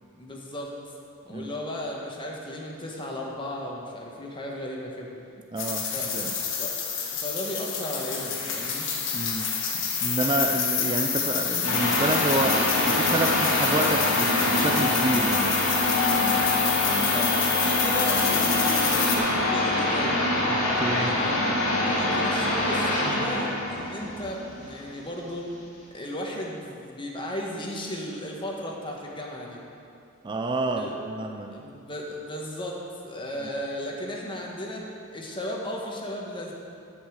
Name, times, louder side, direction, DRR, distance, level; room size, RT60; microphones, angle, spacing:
voice 1, 0.1-0.8 1.2-5.1 5.9-6.1 6.5-6.7 7.1-8.9 16.8-20.2 21.1-21.3 21.8-25.5 25.9-29.6 30.7-31.0 31.5-34.9 35.1-36.5, left 1 dB, 25° left, -2 dB, 1.3 m, -35 dB
voice 2, 5.5-6.3 9.1-15.6 20.5-21.2 30.2-31.6 33.4-33.5, right 2 dB, 20° right, 4 dB, 0.4 m, -29 dB
sound 1, 5.6-19.2, left 6 dB, 60° left, 1.5 m, -28 dB
sound 2, 11.6-25.1, left 1 dB, 90° left, 2.5 m, -25 dB
10.5 x 5.5 x 7.8 m, 2.5 s
head